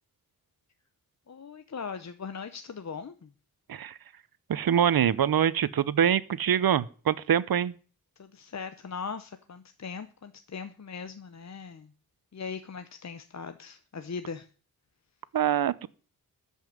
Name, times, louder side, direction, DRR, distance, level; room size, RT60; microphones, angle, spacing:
voice 1, 1.3-3.3 8.2-11.9 12.3-14.5, left 5 dB, 50° left, 0.9 m, -39 dB
voice 2, 4.5-7.8 15.3-15.9, right 9 dB, 75° right, 0.8 m, -24 dB
13.5 x 5.6 x 9.3 m
wide cardioid pair, 110°, 36 cm